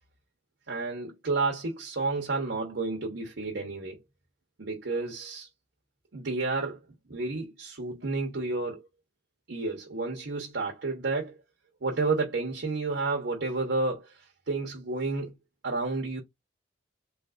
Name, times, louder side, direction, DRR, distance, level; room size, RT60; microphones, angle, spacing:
voice 1, 0.7-4.0 4.6-5.5 6.1-6.8 7.1-8.8 9.5-11.4 11.8-15.3 15.6-16.2, right 3 dB, 75° right, 0.9 m, -31 dB
3.3 x 3.3 x 2.4 m
head